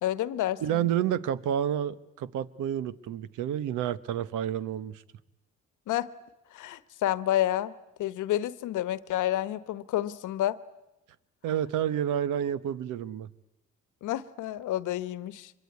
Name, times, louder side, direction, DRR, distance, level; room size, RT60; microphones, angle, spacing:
voice 1, 0.0-0.9 5.9-6.1 6.5-7.7 8.0-10.6 14.0-15.5, left 13 dB, 85° left, 1.1 m, -29 dB
voice 2, 0.6-5.0 11.4-13.3, right 10 dB, 85° right, 1.0 m, -29 dB
25.0 x 22.5 x 9.5 m
cardioid pair, 90°, 30 cm